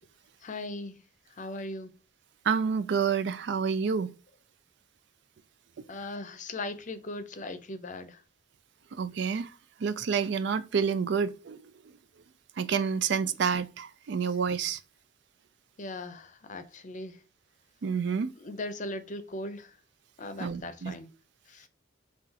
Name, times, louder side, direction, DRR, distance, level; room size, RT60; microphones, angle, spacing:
voice 1, 0.4-1.0 1.3-1.9 5.9-8.2 15.8-17.2 18.3-19.8 20.2-21.1 21.5-21.7, left 2 dB, 40° left, 0.6 m, -39 dB
voice 2, 2.4-4.1 8.9-9.5 9.8-11.6 12.6-14.8 17.8-18.3 20.4-20.9, right 6 dB, 65° right, 0.4 m, -28 dB
5.8 x 2.4 x 2.8 m
head